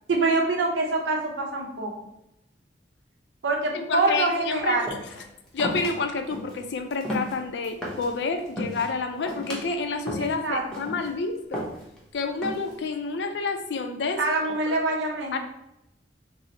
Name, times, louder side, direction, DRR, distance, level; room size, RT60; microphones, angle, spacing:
voice 1, 0.1-1.9 3.4-4.9 10.2-10.6 14.2-15.4, right 3 dB, 90° right, 0 dB, 0.6 m, -25 dB
voice 2, 3.7-4.8 5.5-11.7 12.1-14.2 14.7-14.8 15.3-15.4, left 4 dB, 75° left, 6 dB, 0.4 m, -29 dB
sound 1, 4.9-5.2 5.6-5.9 6.3-6.6 6.9-8.1 8.5-8.9 9.3-9.7 10.1-10.4 10.7-11.1 11.5-12.0 12.4-12.8, equal, 5° left, 0.6 m, -33 dB
2.7 x 2.0 x 4.0 m, 0.85 s
head